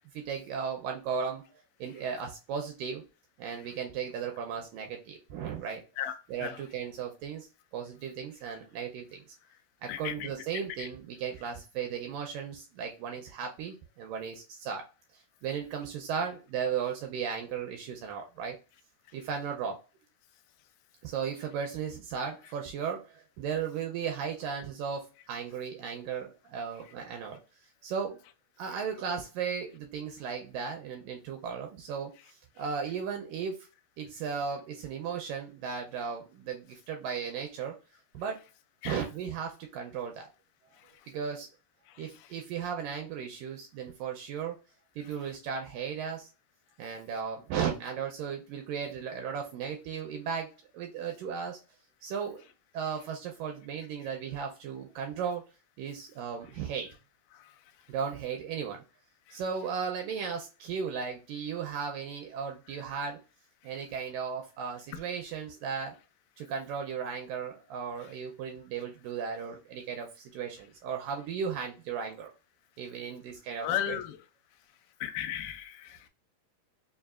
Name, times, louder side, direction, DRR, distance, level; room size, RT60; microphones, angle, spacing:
voice 1, 0.1-3.0 3.4-5.8 6.3-7.5 7.7-9.3 9.8-14.8 15.1-18.6 19.1-19.8 21.0-27.4 27.8-28.2 28.6-33.7 34.0-37.8 38.1-38.4 38.9-40.3 41.1-41.5 42.0-44.6 45.0-46.3 46.8-51.6 52.0-52.5 52.7-55.4 55.8-56.9 57.9-58.8 59.3-63.2 63.6-66.0 66.4-72.3 72.8-74.0, right 6 dB, 80° right, 2 dB, 2.0 m, -36 dB
voice 2, 9.9-10.3 10.8-10.9 38.8-39.0 73.6-74.2 75.0-76.1, left 11 dB, 85° left, 7 dB, 2.4 m, -34 dB
5.6 x 2.4 x 2.3 m, 0.32 s
omnidirectional pair, 4.3 m